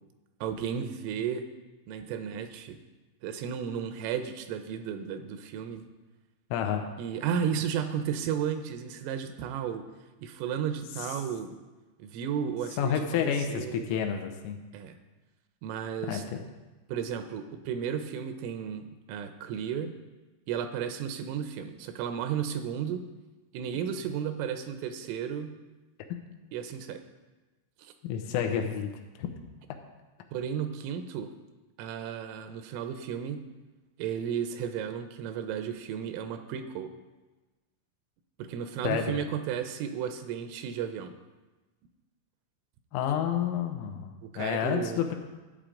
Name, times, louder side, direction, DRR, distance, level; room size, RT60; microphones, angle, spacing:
voice 1, 0.4-1.5 1.9-2.8 3.2-5.8 7.0-9.8 10.2-11.6 12.0-13.9 14.7-15.0 15.6-16.2 16.9-19.9 20.5-23.0 23.5-25.5 26.5-27.0 27.8-27.9 30.3-31.3 31.8-33.4 34.0-36.9 38.4-41.1 44.2-45.0, right 8 dB, 85° right, 8 dB, 3.2 m, -33 dB
voice 2, 6.5-6.9 12.8-14.6 16.0-16.4 26.1-26.2 28.0-28.9 29.2-29.3 38.8-39.2 42.9-45.2, left 8 dB, 85° left, 4 dB, 3.4 m, -29 dB
13.5 x 8.4 x 3.8 m, 1.2 s
omnidirectional pair, 5.9 m